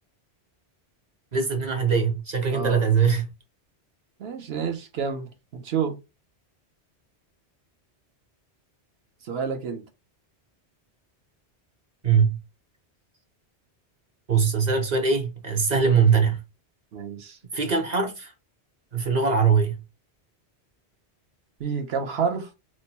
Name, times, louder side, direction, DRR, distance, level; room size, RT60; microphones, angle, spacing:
voice 1, 1.3-3.3 12.0-12.4 14.3-16.4 17.5-18.3 18.9-19.8, right 5 dB, 45° right, 0.8 m, -22 dB
voice 2, 2.5-2.8 4.2-6.0 9.2-9.9 16.9-17.4 21.6-22.5, right 6 dB, 70° right, 0.9 m, -29 dB
3.0 x 2.2 x 4.0 m
omnidirectional pair, 1.1 m